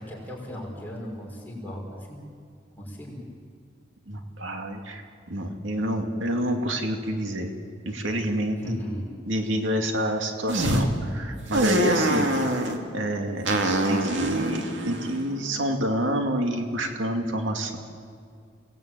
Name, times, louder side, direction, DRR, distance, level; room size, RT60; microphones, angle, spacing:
voice 1, 0.0-2.2 2.8-3.2 8.6-9.0, equal, 10° left, -3 dB, 5.8 m, -36 dB
voice 2, 4.1-7.5 7.9-8.8 9.3-12.3 12.9-17.8, right 1 dB, 85° right, 4 dB, 2.3 m, -28 dB
sound 1, 10.5-10.9 11.5-12.8 13.5-15.8, right 1 dB, 70° right, 2.5 m, -25 dB
29.5 x 19.5 x 9.0 m, 2.1 s
head